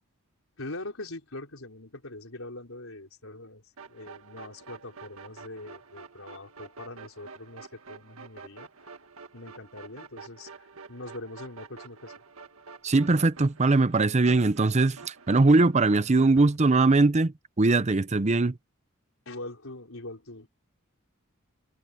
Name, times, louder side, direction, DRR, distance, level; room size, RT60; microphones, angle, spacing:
voice 1, 0.6-3.6 3.9-8.7 9.3-12.1 19.3-20.5, left 2 dB, 70° left, 4.5 m, -42 dB
sound 1, 3.8-16.6, right 4 dB, 80° right, 1.7 m, -48 dB
voice 2, 12.8-18.6, right 3 dB, 35° right, 0.7 m, -21 dB
head